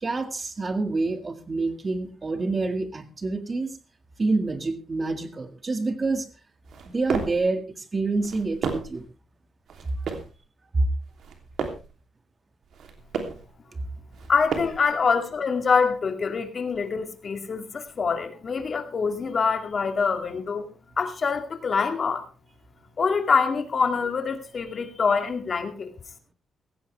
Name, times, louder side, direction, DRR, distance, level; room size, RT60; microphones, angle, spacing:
voice 1, 0.0-3.8 4.2-6.3 6.9-9.0 10.7-10.9 13.7-13.8, right 3 dB, 25° right, 9 dB, 1.9 m, -27 dB
sound 1, 6.6-7.5 8.1-9.0 9.7-10.4 11.1-11.9 12.6-13.5 14.1-14.9, right 5 dB, 65° right, 3.0 m, -33 dB
voice 2, 14.3-20.7 21.0-22.3 23.0-25.9, left 5 dB, 40° left, 7 dB, 2.3 m, -25 dB
16.5 x 15.0 x 3.4 m, 0.31 s
cardioid pair, 135°, 0 cm